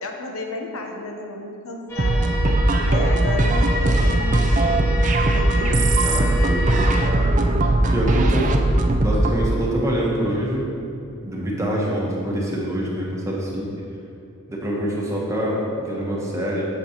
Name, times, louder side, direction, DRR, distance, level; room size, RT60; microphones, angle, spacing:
voice 1, 0.0-2.3 2.9-4.5 5.2-5.8, left 2 dB, 70° left, 2 dB, 0.8 m, -32 dB
sound 1, 1.9-7.1, left 1 dB, 10° left, 1.0 m, -30 dB
sound 2, 2.0-9.4, right 1 dB, 35° right, 0.4 m, -19 dB
voice 2, 6.0-7.3 7.9-8.6 8.9-10.6 11.2-13.7 14.5-16.6, right 1 dB, 15° right, -4 dB, 1.0 m, -25 dB
8.2 x 6.7 x 2.9 m, 2.7 s
head